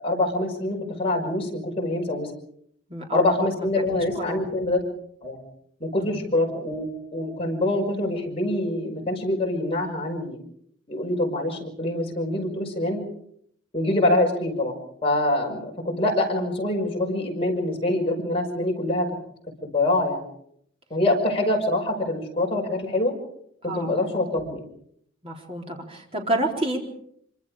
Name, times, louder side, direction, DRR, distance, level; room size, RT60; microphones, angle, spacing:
voice 1, 0.0-2.3 3.1-4.8 5.2-5.4 5.8-10.4 10.9-13.0 13.7-14.8 15.0-19.1 19.6-20.2 20.9-23.1 23.6-24.6, left 1 dB, 30° left, -1 dB, 5.9 m, -25 dB
voice 2, 2.9-3.7 4.2-4.4 6.0-6.2 23.6-23.9 25.2-26.8, right 1 dB, 30° right, 1 dB, 4.1 m, -29 dB
25.5 x 25.5 x 5.0 m, 0.69 s
head